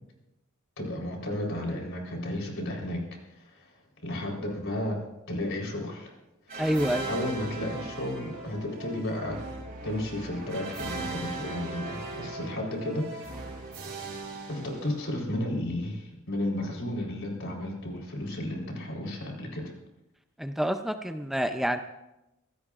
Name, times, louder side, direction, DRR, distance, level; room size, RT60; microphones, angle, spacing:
voice 1, 0.8-3.0 3.3-3.7 4.0-5.0 5.3-6.1 6.5-6.7 7.1-9.4 9.8-13.5 14.5-19.7, left 1 dB, 65° left, 0 dB, 3.8 m, -33 dB
Victory Fanfare, 6.5-15.4, right 2 dB, 45° right, 4.7 m, -39 dB
voice 2, 6.6-7.1 20.4-21.8, equal, ahead, 7 dB, 0.5 m, -28 dB
25.0 x 16.0 x 2.5 m, 0.93 s
head